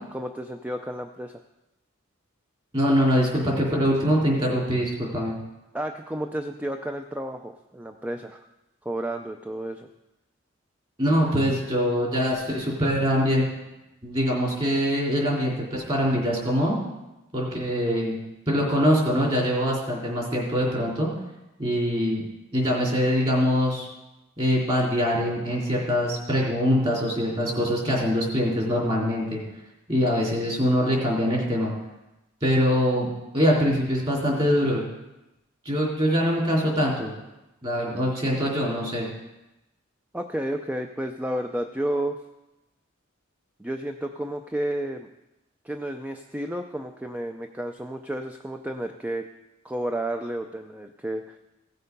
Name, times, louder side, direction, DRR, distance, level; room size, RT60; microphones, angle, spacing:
voice 1, 0.1-1.4 5.7-8.4 8.8-9.9 40.1-42.2 43.6-45.1 45.6-49.2 49.6-51.4, right 1 dB, 5° right, 5 dB, 0.4 m, -31 dB
voice 2, 2.7-5.3 11.0-13.4 14.0-16.8 17.3-18.2 18.5-21.1 21.6-22.2 22.5-23.9 24.4-29.4 29.9-31.7 32.4-33.1 33.3-34.8 35.7-37.1 37.6-39.1, equal, 30° right, -3 dB, 3.5 m, -23 dB
16.5 x 6.7 x 5.3 m, 0.98 s
head